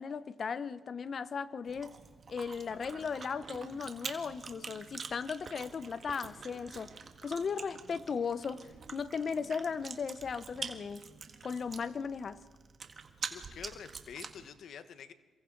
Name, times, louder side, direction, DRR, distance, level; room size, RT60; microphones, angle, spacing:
voice 1, 0.0-1.9 2.3-6.9 7.2-11.0 11.4-12.4, left 6 dB, 45° left, 15 dB, 0.9 m, -37 dB
Chewing mastication, 1.7-14.5, right 5 dB, 40° right, 1.8 m, -46 dB
voice 2, 13.3-15.1, left 7 dB, 65° left, 11 dB, 1.2 m, -47 dB
28.0 x 23.5 x 4.0 m, 1.3 s
cardioid pair, 90°, 0 cm